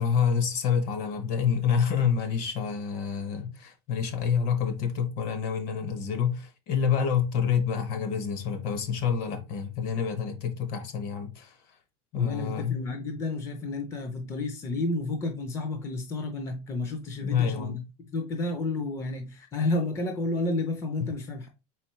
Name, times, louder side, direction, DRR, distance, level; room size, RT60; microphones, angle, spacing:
voice 1, 0.0-11.6 12.1-12.8 17.2-17.8 21.0-21.1, left 7 dB, 45° left, 1.0 m, -27 dB
voice 2, 12.1-17.8 18.1-21.5, left 2 dB, 15° left, 0.5 m, -31 dB
4.3 x 3.9 x 3.0 m
supercardioid pair, 160°, 20 cm